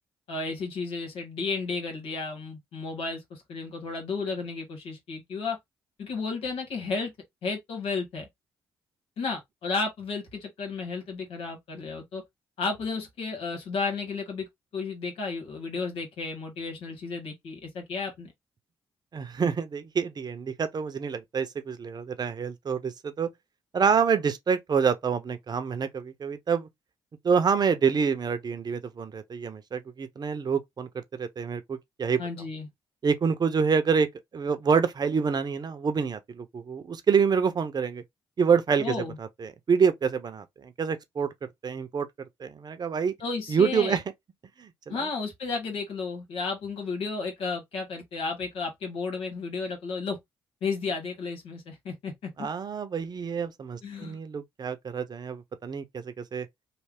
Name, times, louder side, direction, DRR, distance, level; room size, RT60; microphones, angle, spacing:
voice 1, 0.3-5.6 6.0-7.1 7.4-8.3 9.2-12.2 12.6-14.5 14.7-18.3 32.2-32.7 38.8-39.2 43.2-44.0 44.9-50.2 50.6-52.5 53.8-54.2, left 4 dB, 75° left, 1.5 m, -33 dB
voice 2, 19.1-23.3 23.7-26.7 27.2-32.2 33.0-34.1 34.3-38.0 38.4-41.3 41.6-42.1 42.4-43.1 43.5-44.0 44.6-45.1 52.4-56.5, right 6 dB, 45° right, 0.7 m, -27 dB
3.3 x 2.3 x 3.5 m
supercardioid pair, 55°, 10 cm